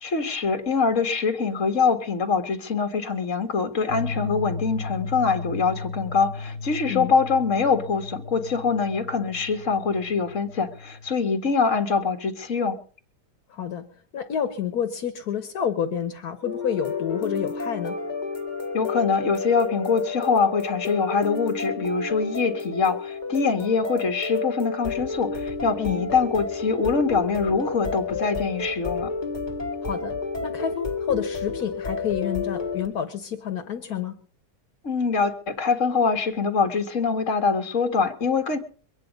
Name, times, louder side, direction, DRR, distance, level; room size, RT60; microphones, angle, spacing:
voice 1, 0.0-12.8 18.7-29.1 34.8-38.6, left 5 dB, 50° left, 2.1 m, -24 dB
sound 1, 3.9-11.1, left 3 dB, 80° right, 2.4 m, -35 dB
voice 2, 13.5-18.0 25.8-26.0 29.8-30.1 30.4-34.2, left 8 dB, 75° left, 1.6 m, -29 dB
sound 2, 16.4-32.9, left 4 dB, 30° left, 1.9 m, -30 dB
23.0 x 9.5 x 5.2 m
omnidirectional pair, 1.7 m